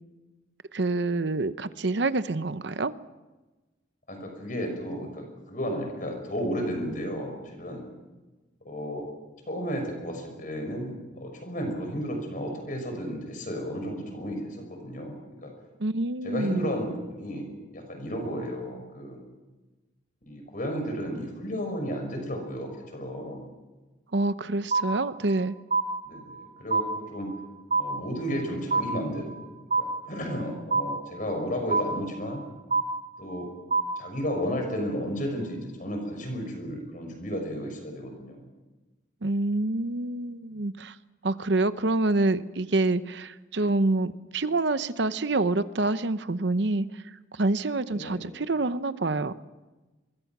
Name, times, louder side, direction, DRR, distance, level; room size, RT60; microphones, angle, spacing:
voice 1, 0.7-2.9 15.8-16.7 24.1-25.5 39.2-40.9 41.2-46.9 47.4-49.3, right 2 dB, 65° right, 13 dB, 0.8 m, -27 dB
voice 2, 4.1-7.8 8.6-9.1 9.5-15.2 15.4-15.5 16.2-17.5 17.7-19.2 20.3-23.4 26.0-27.3 27.8-29.3 29.8-32.4 33.2-33.5 34.0-38.4 47.9-48.2, equal, 45° left, 4 dB, 6.3 m, -33 dB
sound 1, 24.7-25.4 25.7-26.4 26.7-27.4 27.7-28.4 28.7-29.4 29.7-30.4 30.7-31.4 31.7-32.4 32.7-33.4 33.7-34.4, right 4 dB, 45° right, 2.7 m, -27 dB
24.5 x 22.5 x 6.1 m, 1.2 s
head